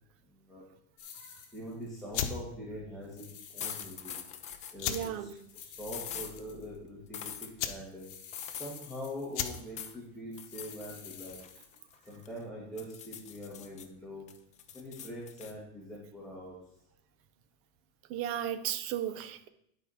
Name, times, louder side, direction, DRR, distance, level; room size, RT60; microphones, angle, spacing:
sound 1, 1.0-2.0 3.0-4.4 4.7-4.8 5.4-6.9 7.7-9.5 10.3-12.2, left 8 dB, 45° left, 1.4 m, -50 dB
voice 1, 1.5-4.1 4.7-5.3 5.6-8.1 8.5-11.4 12.1-14.3 14.7-16.6, equal, ahead, -7 dB, 1.8 m, -43 dB
sound 2, 2.1-11.6, left 9 dB, 85° left, 0.9 m, -40 dB
sound 3, 3.6-5.2 5.9-6.3 7.1-7.5 8.3-8.9 9.5-10.0 10.4-10.9 11.3-12.4 12.8-13.9 14.3-15.5, left 9 dB, 20° left, 0.5 m, -43 dB
voice 2, 4.9-5.3 18.1-19.5, right 10 dB, 40° right, 11 dB, 0.7 m, -35 dB
10.5 x 4.3 x 4.9 m, 0.72 s
supercardioid pair, 145°, 34 cm